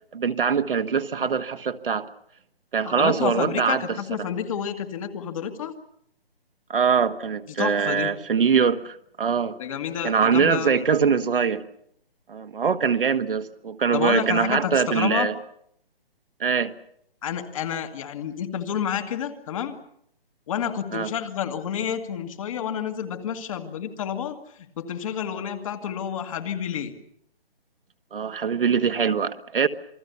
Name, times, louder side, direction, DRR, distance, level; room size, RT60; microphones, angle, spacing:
voice 1, 0.1-2.1 2.7-3.9 4.2-4.3 6.7-9.6 10.0-11.6 12.3-15.3 16.4-16.7 20.9-21.1 28.1-29.7, right 6 dB, 60° right, 1.5 m, -23 dB
voice 2, 2.8-5.7 7.5-8.1 9.6-10.8 13.9-15.3 17.2-19.8 20.5-24.4 24.8-26.9, left 8 dB, 35° left, 2.0 m, -29 dB
28.0 x 21.0 x 7.0 m
figure-of-eight pair, 150°, 30 cm